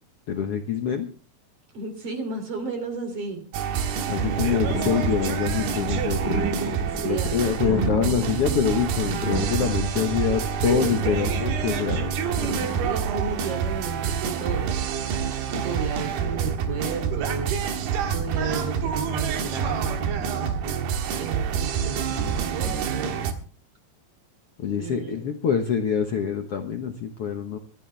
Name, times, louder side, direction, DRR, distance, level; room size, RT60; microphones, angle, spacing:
voice 1, 0.3-1.1 4.1-6.2 7.0-12.1 15.5-15.7 24.6-27.6, left 7 dB, 85° left, 5 dB, 1.3 m, -25 dB
voice 2, 1.7-3.4 6.9-7.8 10.7-11.3 12.8-14.8 15.6-17.6 18.1-20.8 21.2-23.2 24.8-25.2, right 4 dB, 40° right, 7 dB, 3.7 m, -33 dB
sound 1, 3.5-23.3, right 7 dB, 80° right, 3.4 m, -27 dB
sound 2, 4.7-12.9, left 1 dB, 15° left, 3.5 m, -33 dB
24.5 x 11.5 x 3.3 m, 0.36 s
omnidirectional pair, 4.6 m